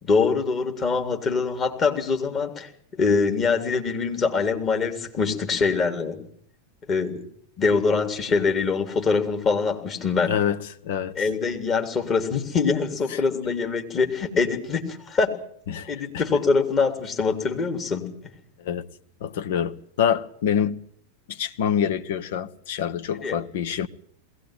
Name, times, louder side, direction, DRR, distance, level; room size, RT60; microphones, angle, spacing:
voice 1, 0.0-6.2 6.9-7.2 7.6-10.3 11.2-15.3 15.9-18.0 23.2-23.4, left 4 dB, 30° left, 3.4 m, -24 dB
voice 2, 10.3-11.3 13.1-13.2 15.7-16.2 18.6-18.9 19.2-20.8 21.3-23.9, left 8 dB, 55° left, 1.0 m, -26 dB
21.5 x 17.5 x 9.1 m
figure-of-eight pair, 90°, 0 cm